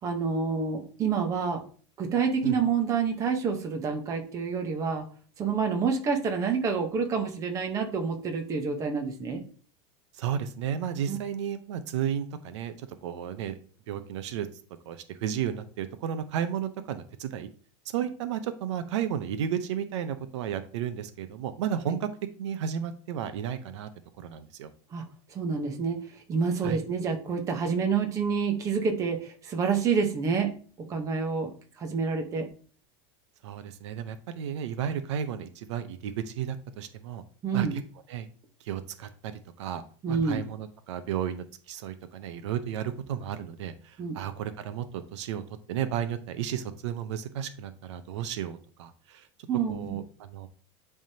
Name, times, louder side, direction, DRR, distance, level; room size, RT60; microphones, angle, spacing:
voice 1, 0.0-1.6 2.0-5.0 5.4-9.4 11.1-11.2 24.9-25.0 25.3-26.0 26.3-30.5 30.9-31.5 31.8-32.5 37.4-37.7 40.0-40.4 44.0-44.2 49.5-50.0, right 5 dB, 20° right, 4 dB, 1.0 m, -28 dB
voice 2, 10.2-13.6 13.9-14.5 14.9-17.5 17.9-22.1 22.4-23.9 24.2-24.7 26.6-26.8 33.4-37.2 37.5-37.8 38.1-38.3 38.6-39.3 39.6-45.4 45.7-49.3 49.7-50.5, right 9 dB, 85° right, 10 dB, 0.8 m, -33 dB
10.5 x 3.6 x 2.8 m, 0.43 s
supercardioid pair, 165°, 15 cm